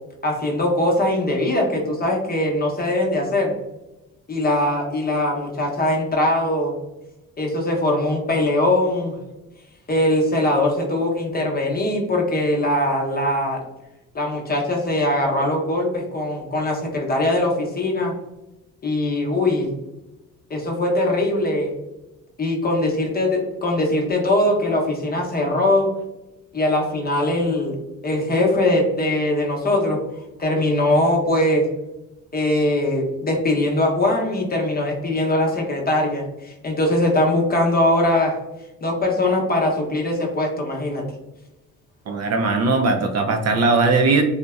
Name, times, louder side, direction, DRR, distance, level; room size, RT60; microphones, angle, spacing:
voice 1, 0.2-3.5 4.3-6.8 7.4-9.1 9.9-13.6 14.1-18.1 18.8-19.7 20.5-21.7 22.4-25.9 26.5-27.8 28.0-30.0 30.4-31.7 32.3-38.4 38.8-41.0, left 1 dB, 25° left, -1 dB, 0.7 m, -21 dB
voice 2, 42.1-44.2, right 3 dB, 45° right, 4 dB, 0.5 m, -19 dB
2.6 x 2.1 x 2.3 m, 0.99 s
supercardioid pair, 65°, 36 cm